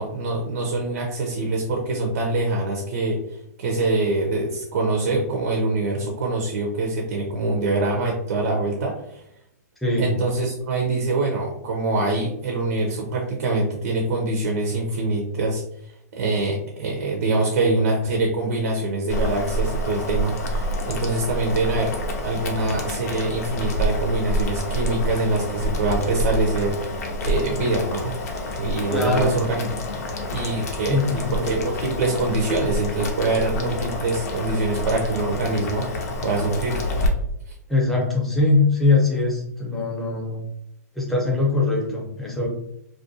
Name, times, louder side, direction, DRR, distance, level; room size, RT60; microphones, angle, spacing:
voice 1, 0.0-3.2 3.6-9.2 10.0-15.6 16.1-28.2 28.5-29.8 30.3-35.9 36.2-36.8, right 2 dB, 60° right, 0 dB, 0.6 m, -24 dB
Boiling, 19.1-37.1, equal, 60° left, 0.6 m, -28 dB
voice 2, 28.9-29.4 30.9-31.5 37.7-40.4 40.9-42.5, left 3 dB, ahead, -4 dB, 0.7 m, -22 dB
2.5 x 2.2 x 2.7 m, 0.77 s
hypercardioid pair, 130°, 9 cm